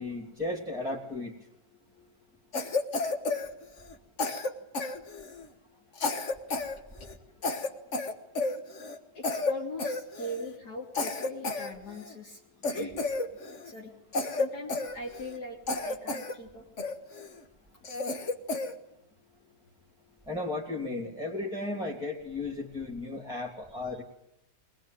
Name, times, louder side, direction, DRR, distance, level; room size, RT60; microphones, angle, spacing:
voice 1, 0.0-1.3 20.3-24.0, left 2 dB, ahead, 0 dB, 2.7 m, -35 dB
Cough, 2.5-3.9 4.2-5.5 6.0-6.8 7.0-7.1 7.4-9.0 9.2-9.5 9.8-10.5 10.9-12.1 12.6-13.7 14.1-15.4 15.7-16.3 16.8-17.3 17.8-18.7, left 3 dB, 45° left, 1.7 m, -31 dB
voice 2, 9.1-12.4 12.7-13.0 13.6-13.9 14.3-16.7 23.7-23.8, left 1 dB, 60° left, -1 dB, 3.3 m, -41 dB
22.5 x 20.5 x 9.1 m, 0.80 s
omnidirectional pair, 1.9 m